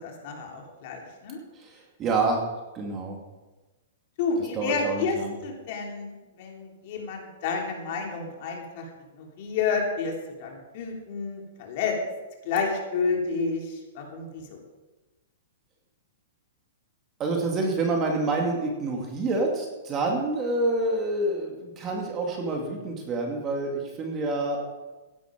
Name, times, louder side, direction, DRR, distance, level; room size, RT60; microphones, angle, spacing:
voice 1, 0.0-1.4 4.2-6.1 6.4-8.9 9.2-10.1 10.4-12.0 12.4-14.6, left 5 dB, 40° left, 1 dB, 3.2 m, -30 dB
voice 2, 1.6-2.4 2.7-3.2 4.6-5.3 17.2-24.6, right 2 dB, 20° right, 1 dB, 2.4 m, -27 dB
16.0 x 10.5 x 5.2 m, 1.1 s
hypercardioid pair, 165°, 0 cm